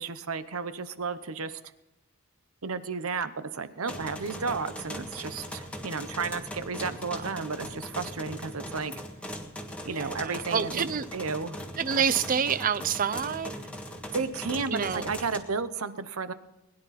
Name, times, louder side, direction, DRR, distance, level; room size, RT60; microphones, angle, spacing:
voice 1, 0.0-1.6 2.6-8.9 9.8-11.6 12.0-12.1 14.1-16.3, right 4 dB, 75° right, 0.9 m, -33 dB
sound 1, 3.9-15.4, equal, 5° left, 1.5 m, -40 dB
voice 2, 9.9-11.1 11.8-13.5 14.7-15.0, right 7 dB, 40° right, 0.5 m, -28 dB
21.0 x 11.0 x 4.2 m
head